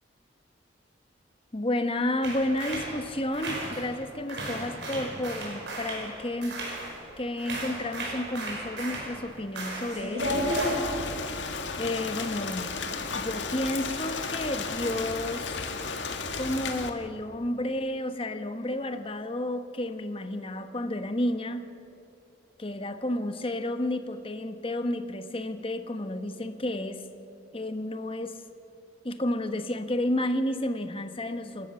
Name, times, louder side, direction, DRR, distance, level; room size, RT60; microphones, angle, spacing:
voice 1, 1.5-6.6 7.2-10.4 11.8-12.7 13.1-15.7 16.4-21.7 22.6-27.0 27.5-28.4 29.0-31.7, left 1 dB, 30° left, 9 dB, 1.2 m, -31 dB
sound 1, 2.2-4.0 4.3-7.1 7.4-10.8, right 1 dB, 70° right, 5.6 m, -34 dB
Rain, 10.2-16.9, left 4 dB, 85° left, 1.9 m, -34 dB
28.5 x 13.0 x 7.1 m, 2.7 s
head